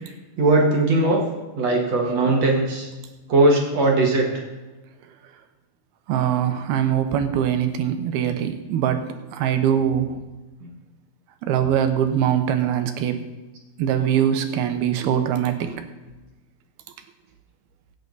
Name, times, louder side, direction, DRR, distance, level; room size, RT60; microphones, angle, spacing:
voice 1, 0.4-1.2 1.6-2.9 3.3-4.3 10.6-10.7, right 2 dB, 50° right, 0 dB, 2.6 m, -19 dB
voice 2, 6.1-10.2 11.4-13.2 13.8-15.8, right 9 dB, 85° right, 7 dB, 3.0 m, -22 dB
23.5 x 8.8 x 4.1 m, 1.2 s
omnidirectional pair, 4.4 m